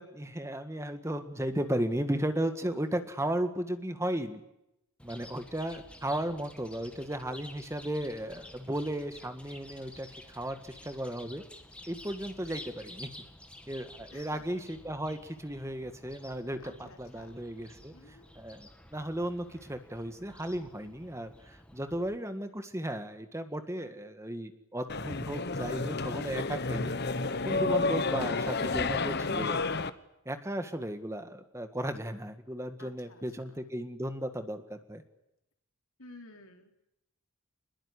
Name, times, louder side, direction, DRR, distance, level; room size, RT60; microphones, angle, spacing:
voice 1, 0.0-4.4 5.0-11.4 11.9-13.1 13.7-17.9 18.3-26.9 27.4-29.6 30.2-35.0, right 1 dB, 15° right, 9 dB, 1.6 m, -35 dB
Chirp tweet, 5.0-22.2, left 1 dB, 5° left, 2.0 m, -52 dB
voice 2, 14.1-14.4 16.6-17.3 17.9-18.3 32.8-33.2 33.5-33.6 36.0-36.7, left 2 dB, 70° left, 4 dB, 3.9 m, -52 dB
sound 1, 24.9-29.9, left 3 dB, 50° left, 1.2 m, -31 dB
24.0 x 21.5 x 9.9 m, 0.86 s
head